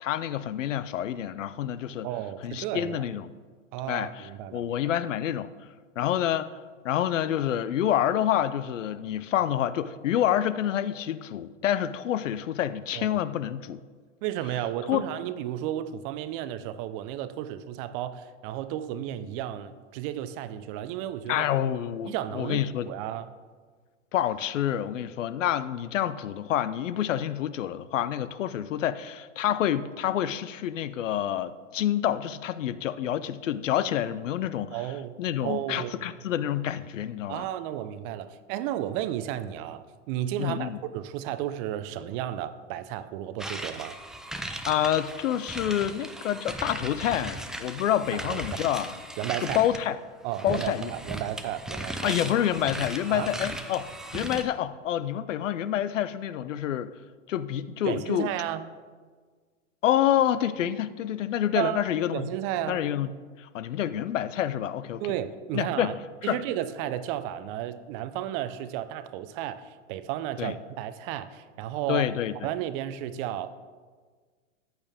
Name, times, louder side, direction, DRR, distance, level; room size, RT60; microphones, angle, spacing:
voice 1, 0.0-2.1 2.4-3.3 3.9-5.5 6.0-6.5 6.8-13.8 14.9-15.1 21.3-22.9 24.1-34.8 35.2-37.4 40.4-40.8 44.6-48.9 49.4-50.0 50.4-50.9 52.0-56.9 57.3-58.3 59.8-62.3 62.7-63.1 63.4-65.0 65.5-66.0 66.3-66.4 70.4-70.5 71.9-72.5, left 11 dB, 75° left, 15 dB, 0.7 m, -28 dB
voice 2, 2.0-3.0 3.7-5.0 12.9-13.2 14.2-21.5 22.1-23.3 34.7-36.1 37.3-44.0 48.1-48.6 49.2-49.6 50.2-52.2 53.1-53.3 57.9-58.7 61.5-61.8 62.1-62.8 65.0-66.0 66.2-72.1 72.4-73.5, right 12 dB, 45° right, 13 dB, 0.7 m, -33 dB
sound 1, 43.4-49.9 50.3-54.4, right 1 dB, ahead, 0.5 m, -37 dB
14.0 x 8.8 x 3.6 m, 1.5 s
hypercardioid pair, 110°, 38 cm